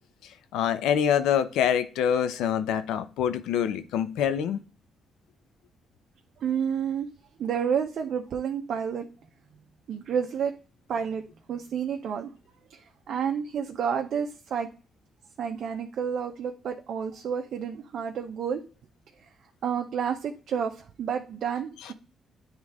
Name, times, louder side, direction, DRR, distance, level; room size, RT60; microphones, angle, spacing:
voice 1, 0.2-4.6 21.8-21.9, left 9 dB, 90° left, 11 dB, 0.7 m, -26 dB
voice 2, 6.4-7.1 7.4-9.1 9.9-10.5 10.9-11.2 11.5-12.3 13.1-14.7 15.4-18.6 19.6-20.7 21.0-21.9, right 7 dB, 65° right, 3 dB, 0.7 m, -30 dB
9.4 x 3.2 x 3.6 m, 0.34 s
cardioid pair, 90°, 0 cm